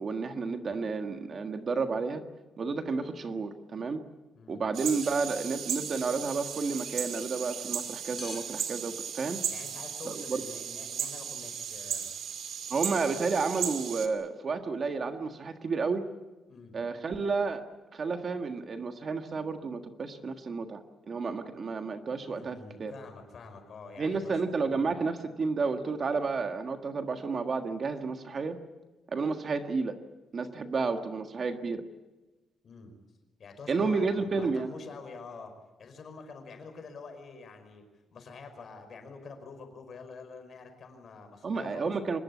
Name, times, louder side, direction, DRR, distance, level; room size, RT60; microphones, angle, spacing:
voice 1, 0.0-2.2 2.6-4.0 4.5-9.4 10.1-10.4 12.7-16.0 16.7-17.6 17.9-22.9 24.0-28.6 29.1-30.0 30.3-31.8 33.7-34.7 41.4-42.2, right 4 dB, 35° right, 7 dB, 1.6 m, -31 dB
sound 1, 4.7-14.1, right 8 dB, 70° right, 2.6 m, -36 dB
sound 2, 5.0-5.2 5.4-5.5 6.4-7.0 8.2-8.5 9.3-9.7, left 3 dB, 10° left, 5.2 m, -47 dB
voice 2, 9.5-12.1 16.5-16.7 22.2-24.4 24.8-24.9 32.6-32.9 33.4-37.8 38.1-41.9, left 4 dB, 45° left, 6 dB, 5.3 m, -47 dB
25.0 x 21.0 x 8.5 m, 1.2 s
cardioid pair, 160°, 0 cm